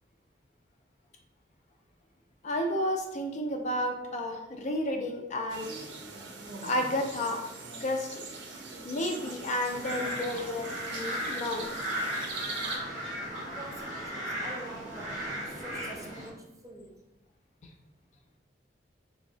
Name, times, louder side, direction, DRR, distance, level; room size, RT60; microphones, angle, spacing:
voice 1, 2.4-5.7 6.6-7.4 7.8-8.3 8.8-11.7 17.6-17.7, left 1 dB, 40° left, 4 dB, 0.3 m, -31 dB
sound 1, 5.5-12.8, right 3 dB, 75° right, 0.6 m, -42 dB
sound 2, 9.7-16.3, equal, 45° right, 1.0 m, -36 dB
voice 2, 13.5-17.0, right 1 dB, 20° right, -1 dB, 0.5 m, -46 dB
3.0 x 2.6 x 2.7 m, 0.90 s
head